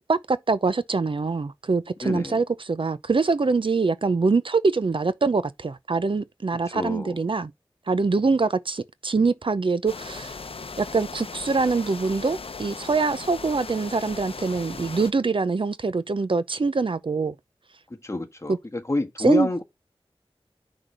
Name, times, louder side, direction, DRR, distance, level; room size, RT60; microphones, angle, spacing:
voice 1, 0.1-7.5 7.9-10.4 10.8-17.4 18.5-18.6 19.2-19.5, right 4 dB, 60° right, 0.7 m, -24 dB
voice 2, 2.0-2.4 6.7-7.2 18.0-19.6, left 2 dB, 30° left, 1.5 m, -28 dB
sound 1, 9.9-15.1, left 4 dB, 70° left, 0.7 m, -38 dB
6.1 x 4.8 x 5.4 m
wide cardioid pair, 60°, 10 cm